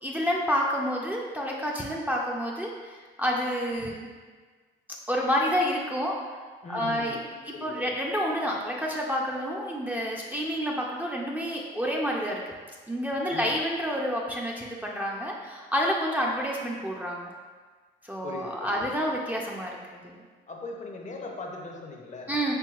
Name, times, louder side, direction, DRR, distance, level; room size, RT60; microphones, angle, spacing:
voice 1, 0.0-4.1 5.1-6.2 6.7-7.2 7.4-12.5 12.9-17.3 18.0-20.2 22.3-22.5, equal, 10° right, -3 dB, 0.4 m, -29 dB
voice 2, 6.6-7.2 7.5-7.9 13.3-13.5 18.2-18.9 20.5-22.3, left 3 dB, 40° left, 1 dB, 0.6 m, -39 dB
4.6 x 3.3 x 2.3 m, 1.5 s
cardioid pair, 90°, 20 cm